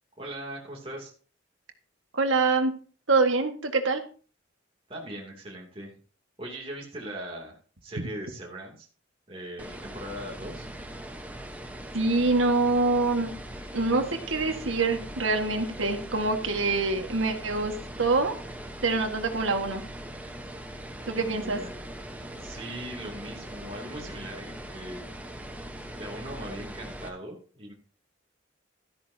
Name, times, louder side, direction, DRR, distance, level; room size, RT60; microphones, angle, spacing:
voice 1, 0.2-1.1 4.9-5.9 6.4-8.9 9.3-10.7 21.1-21.7 22.4-25.1 26.0-27.7, right 1 dB, 30° right, -2 dB, 2.8 m, -40 dB
voice 2, 2.1-2.7 3.1-4.0 11.9-13.3 13.7-17.7 18.0-18.3 18.8-19.8 21.1-21.6, right 3 dB, 85° right, 5 dB, 1.8 m, -25 dB
sound 1, 9.6-27.1, right 1 dB, 10° right, 1.1 m, -41 dB
13.0 x 13.0 x 2.8 m, 0.38 s
head